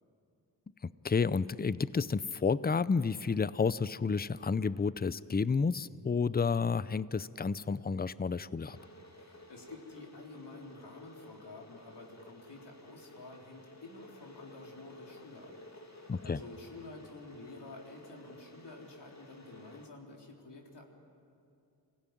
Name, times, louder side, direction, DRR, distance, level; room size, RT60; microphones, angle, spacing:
voice 1, 1.0-8.8 16.1-16.4, left 5 dB, 20° left, 17 dB, 0.6 m, -30 dB
Water / Boiling, 8.6-19.9, left 2 dB, 40° left, 2.8 m, -54 dB
voice 2, 9.2-20.8, left 2 dB, 70° left, 0 dB, 3.9 m, -50 dB
25.0 x 16.5 x 9.3 m, 2.5 s
cardioid pair, 50°, 42 cm